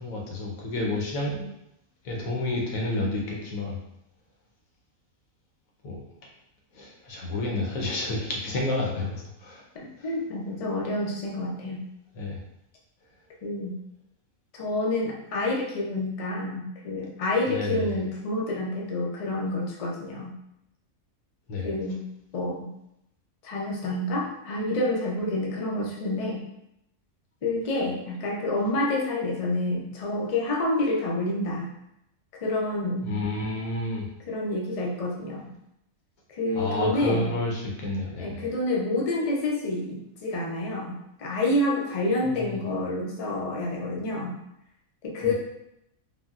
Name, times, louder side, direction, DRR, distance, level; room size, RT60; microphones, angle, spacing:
voice 1, 0.0-1.5 2.0-3.8 5.8-6.0 6.7-9.6 10.0-10.1 12.2-12.4 17.5-17.9 21.5-21.7 33.0-34.1 36.5-38.5 42.2-42.6 45.2-45.3, left 2 dB, 85° left, -2 dB, 1.2 m, -30 dB
voice 2, 10.0-11.8 13.4-13.7 14.5-20.3 21.6-22.0 22.3-22.7 23.4-26.4 27.4-31.7 32.4-33.2 34.3-35.5 36.3-37.3 38.2-44.3 45.0-45.3, left 2 dB, 70° left, -2 dB, 0.3 m, -28 dB
3.7 x 2.1 x 2.3 m, 0.81 s
omnidirectional pair, 1.4 m